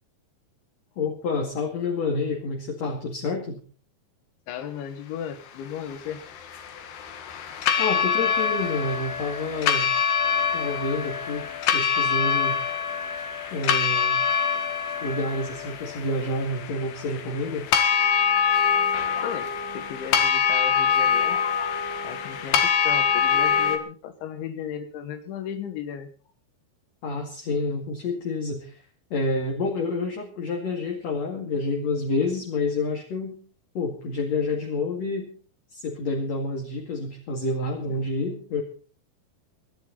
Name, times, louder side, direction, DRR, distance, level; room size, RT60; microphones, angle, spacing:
voice 1, 1.0-3.6 7.8-9.9 10.5-12.6 13.5-14.2 15.0-17.7 27.0-28.8 29.1-33.4 33.7-35.3 35.7-38.6, left 3 dB, 45° left, 1 dB, 2.8 m, -28 dB
voice 2, 4.5-6.3 10.5-10.7 19.2-21.4 22.0-26.1 37.9-38.1, left 8 dB, 90° left, 9 dB, 4.1 m, -35 dB
sound 1, 5.8-23.8, left 7 dB, 70° left, 3.7 m, -25 dB
24.5 x 11.5 x 4.1 m, 0.40 s
omnidirectional pair, 5.1 m